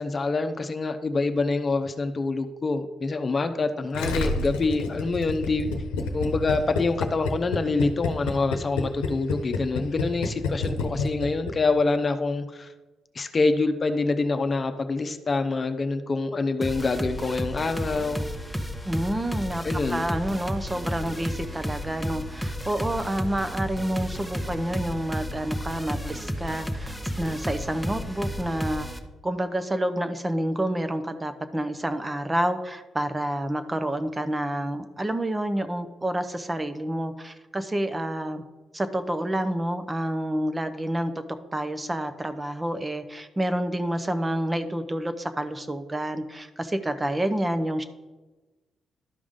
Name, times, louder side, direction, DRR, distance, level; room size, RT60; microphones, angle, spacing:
voice 1, 0.0-5.7 6.1-12.7 13.1-18.2 19.6-20.1, left 3 dB, 40° left, 8 dB, 0.8 m, -26 dB
Gurgling, 3.9-11.5 11.8-11.9, left 4 dB, 90° left, 0.8 m, -28 dB
sound 1, 16.6-29.0, equal, ahead, 1.0 m, -32 dB
voice 2, 18.8-19.6 19.9-28.9 29.2-38.4 38.7-41.1 41.5-47.8, right 1 dB, 20° right, 9 dB, 0.8 m, -28 dB
12.0 x 4.9 x 3.7 m, 1.2 s
supercardioid pair, 50°, 0 cm